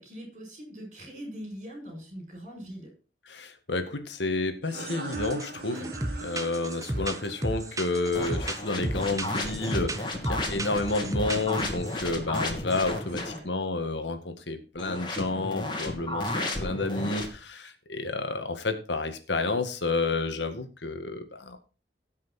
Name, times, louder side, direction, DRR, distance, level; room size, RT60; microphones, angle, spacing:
voice 1, 0.0-2.9 5.6-5.9 13.2-13.5, equal, 40° right, 2 dB, 7.1 m, -42 dB
voice 2, 3.3-5.8 6.2-21.6, left 3 dB, 80° left, 7 dB, 1.8 m, -30 dB
sound 1, 4.6-10.0, right 2 dB, 60° right, 2.7 m, -42 dB
sound 2, 5.1-5.5 5.7-12.0 12.4-12.9, right 1 dB, 20° right, 1.1 m, -34 dB
sound 3, 8.1-13.4 14.8-17.3, left 1 dB, 25° left, 2.6 m, -33 dB
18.0 x 6.2 x 4.3 m, 0.34 s
head